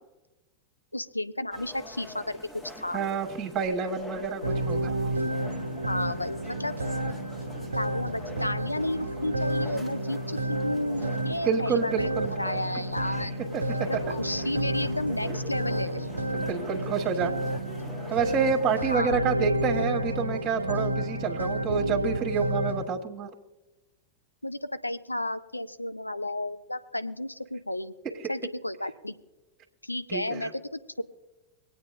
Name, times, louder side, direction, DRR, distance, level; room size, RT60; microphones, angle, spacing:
voice 1, 0.9-2.4 2.8-3.0 5.9-6.7 7.8-13.3 13.9-16.1 18.8-19.2 24.4-27.9 28.3-29.1 29.8-31.0, left 1 dB, 85° left, 11 dB, 0.5 m, -32 dB
sound 1, 1.5-19.0, left 1 dB, 15° left, 1.2 m, -45 dB
voice 2, 2.9-4.9 7.2-7.3 11.4-12.3 13.5-14.0 16.3-17.3 18.1-23.3 28.2-28.3 30.1-30.5, right 5 dB, 25° right, 1 dB, 1.4 m, -28 dB
sound 2, 4.4-22.9, right 1 dB, 75° right, 0.7 m, -31 dB
25.5 x 8.8 x 2.5 m, 1.0 s
figure-of-eight pair, 90°, 0 cm